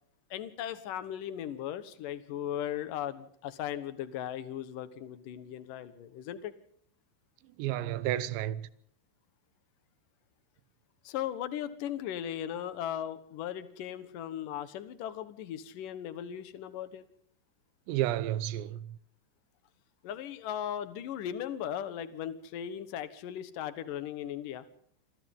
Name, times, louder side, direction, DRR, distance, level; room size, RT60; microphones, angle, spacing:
voice 1, 0.3-6.5 11.0-17.0 20.0-24.6, left 10 dB, 75° left, 2.0 m, -37 dB
voice 2, 7.6-8.7 17.9-18.9, right 13 dB, 75° right, 2.9 m, -31 dB
27.0 x 26.0 x 3.8 m
omnidirectional pair, 5.8 m